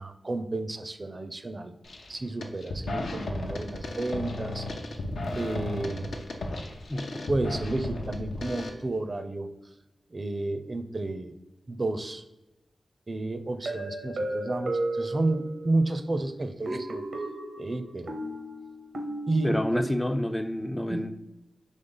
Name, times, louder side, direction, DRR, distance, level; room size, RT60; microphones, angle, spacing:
voice 1, 0.0-1.7 2.1-4.7 5.3-6.1 7.3-9.5 10.1-11.3 11.7-12.2 13.1-17.0 17.6-18.2 19.3-19.9 20.9-21.1, right 2 dB, 45° right, 9 dB, 0.4 m, -31 dB
sound 1, 1.8-2.1 2.4-8.7, left 2 dB, 80° left, 0.6 m, -34 dB
voice 2, 6.9-7.3 19.4-21.1, left 1 dB, 15° left, 8 dB, 0.3 m, -29 dB
sound 2, 13.7-15.9 16.7-19.8, right 1 dB, 85° right, 0.7 m, -34 dB
3.9 x 3.1 x 3.8 m, 0.98 s
cardioid pair, 45°, 0 cm